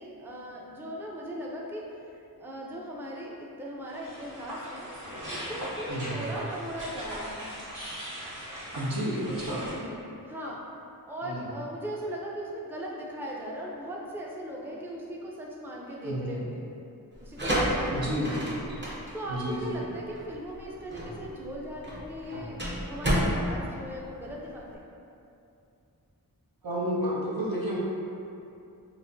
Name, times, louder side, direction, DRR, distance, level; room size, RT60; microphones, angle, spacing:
voice 1, 0.0-1.9 2.4-7.6 9.6-10.6 11.1-16.6 17.2-18.5 18.7-22.6 22.9-24.8, equal, 5° right, -3 dB, 0.5 m, -39 dB
sound 1, 3.9-9.7, equal, 55° right, 1.1 m, -39 dB
voice 2, 5.9-6.3 8.7-9.6 11.2-11.4 16.0-16.4 17.9-18.6 19.3-19.8 26.6-27.8, equal, 70° right, -5 dB, 0.8 m, -31 dB
sound 2, 17.1-24.7, equal, 30° right, 0.8 m, -31 dB
4.0 x 3.0 x 2.6 m, 2.6 s
wide cardioid pair, 45°, 37 cm